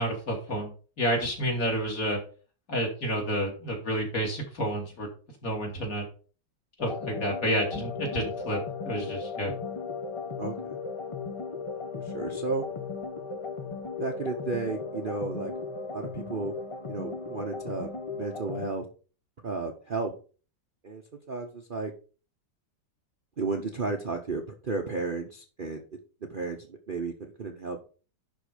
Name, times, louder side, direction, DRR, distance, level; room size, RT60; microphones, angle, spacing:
voice 1, 0.0-2.2 2.7-5.1 5.4-6.0 6.8-9.5, equal, 50° left, 0 dB, 2.9 m, -30 dB
sound 1, 6.8-18.7, left 4 dB, 30° left, 0.6 m, -36 dB
voice 2, 10.4-10.8 12.0-12.6 14.0-15.5 15.9-16.5 16.9-17.9 18.2-18.9 19.4-20.1 20.8-21.0 21.3-21.9 23.4-25.8 26.3-27.8, right 3 dB, 40° right, 2 dB, 0.8 m, -33 dB
11.0 x 3.7 x 5.1 m, 0.37 s
omnidirectional pair, 1.9 m